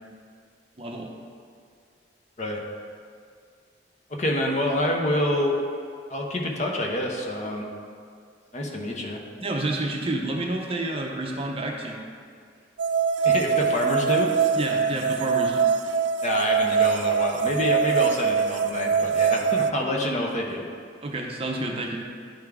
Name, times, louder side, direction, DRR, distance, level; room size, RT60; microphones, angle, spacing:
voice 1, 0.8-1.1 9.4-12.0 14.5-15.7 21.0-22.1, right 2 dB, 30° right, 1 dB, 0.6 m, -29 dB
voice 2, 4.1-5.6 6.1-7.7 8.5-9.2 13.2-14.3 16.2-20.7, left 1 dB, 40° left, 0 dB, 0.8 m, -27 dB
sound 1, 12.8-19.7, right 6 dB, 70° right, 0.3 m, -23 dB
10.5 x 3.6 x 3.5 m, 2.2 s
head